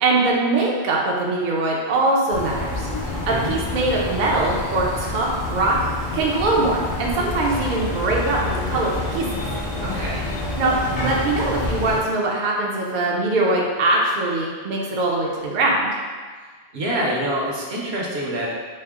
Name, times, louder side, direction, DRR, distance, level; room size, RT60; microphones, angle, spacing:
voice 1, 0.0-2.8 3.4-5.8 6.1-8.4 8.7-9.3 10.6-15.9, right 2 dB, 55° right, -3 dB, 0.6 m, -22 dB
sound 1, 2.3-12.0, left 2 dB, 60° left, 0.9 m, -28 dB
voice 2, 9.8-10.2 16.7-18.5, right 1 dB, 70° right, -4 dB, 1.0 m, -26 dB
4.3 x 2.0 x 3.5 m, 1.5 s
omnidirectional pair, 1.1 m